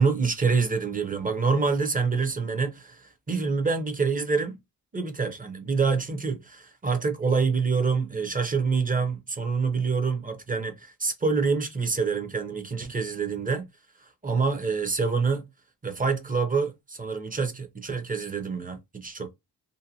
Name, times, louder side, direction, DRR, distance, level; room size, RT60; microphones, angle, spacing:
voice 1, 0.0-4.6 4.9-13.7 14.2-15.5 15.8-19.3, right 5 dB, 20° right, 0.7 m, -26 dB
2.7 x 2.1 x 2.7 m
cardioid pair, 75°, 42 cm